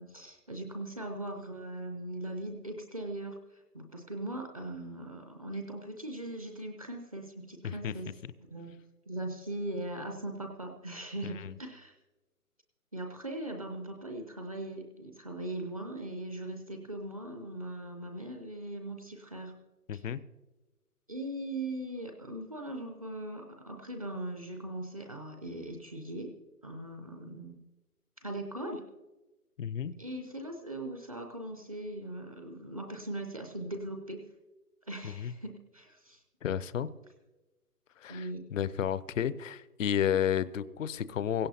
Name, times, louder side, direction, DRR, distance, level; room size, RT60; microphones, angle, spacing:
voice 1, 0.0-8.1 8.5-8.7 9.1-12.0 12.9-19.5 19.9-20.0 21.1-26.4 26.6-27.6 28.2-28.8 30.0-34.2 34.9-36.2 38.1-38.5, right 1 dB, 25° right, 3 dB, 0.6 m, -40 dB
voice 2, 19.9-20.2 29.6-29.9 35.0-35.3 36.4-36.9 38.0-41.5, left 9 dB, 55° left, 16 dB, 0.6 m, -32 dB
17.0 x 15.5 x 2.7 m, 1.1 s
figure-of-eight pair, 150°, 47 cm